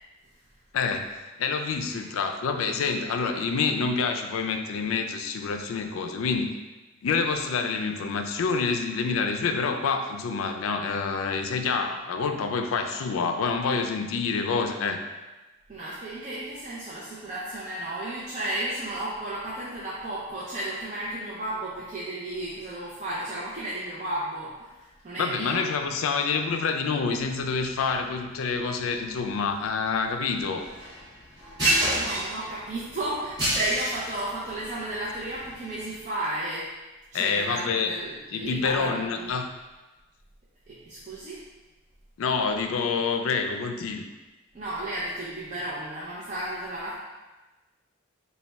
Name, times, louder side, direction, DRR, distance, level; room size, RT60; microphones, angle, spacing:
voice 1, 0.7-1.1 1.4-6.6 7.0-15.0 25.2-30.7 37.1-37.9 38.3-39.5 42.2-44.0, left 5 dB, 80° left, 6 dB, 0.4 m, -27 dB
voice 2, 15.7-25.6 31.4-36.7 37.1-39.4 40.7-41.4 44.5-47.0, right 1 dB, 35° right, -8 dB, 0.5 m, -33 dB
sound 1, 27.1-36.0, right 1 dB, 20° right, 1.5 m, -31 dB
3.3 x 2.3 x 4.0 m, 1.1 s
head